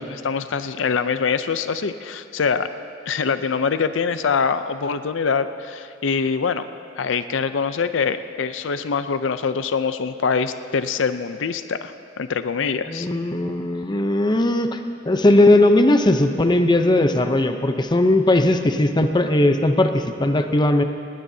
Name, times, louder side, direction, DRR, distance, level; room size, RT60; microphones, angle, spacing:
voice 1, 0.2-2.7 3.1-6.7 7.0-13.1, left 5 dB, 80° left, 11 dB, 0.5 m, -24 dB
voice 2, 12.9-14.8 15.1-20.8, left 1 dB, 25° left, 7 dB, 0.6 m, -18 dB
19.5 x 19.0 x 2.8 m, 2.4 s
head